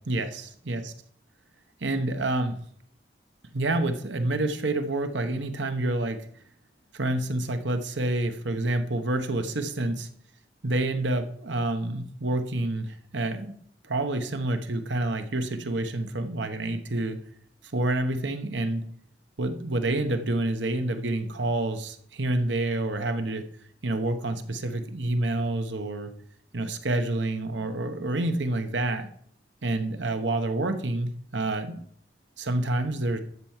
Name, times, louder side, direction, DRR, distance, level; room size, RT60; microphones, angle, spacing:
voice 1, 0.1-0.9 1.8-2.6 3.5-6.2 6.9-10.1 10.6-13.5 13.8-17.2 17.7-18.8 19.4-23.4 23.8-26.1 26.5-29.1 29.6-31.8 32.4-33.2, right 2 dB, 85° right, 8 dB, 1.1 m, -28 dB
12.5 x 4.6 x 7.4 m, 0.64 s
head